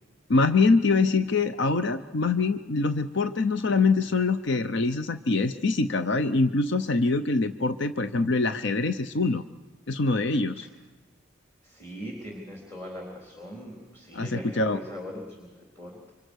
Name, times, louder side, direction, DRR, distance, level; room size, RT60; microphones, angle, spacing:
voice 1, 0.3-9.4 9.9-10.7 14.1-14.8, left 3 dB, 65° left, 10 dB, 0.7 m, -24 dB
voice 2, 11.6-16.1, equal, 10° left, 0 dB, 3.9 m, -40 dB
28.5 x 25.5 x 6.4 m, 1.3 s
head